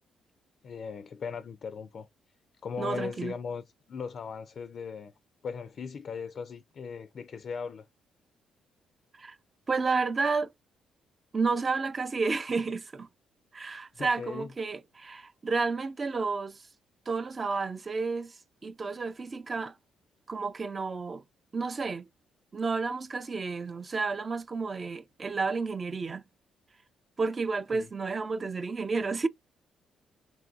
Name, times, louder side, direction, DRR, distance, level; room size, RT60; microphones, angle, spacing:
voice 1, 0.6-2.1 2.6-5.1 5.4-7.9 14.0-14.5 27.7-27.9, left 5 dB, 55° left, 0.4 m, -38 dB
voice 2, 2.8-3.3 9.2-9.4 9.7-10.5 11.3-13.1 13.5-16.6 17.1-18.4 18.6-19.7 20.3-21.2 21.5-22.0 22.5-26.2 27.2-29.3, right 4 dB, 35° right, 0.4 m, -31 dB
2.9 x 2.7 x 2.4 m
cardioid pair, 90°, 0 cm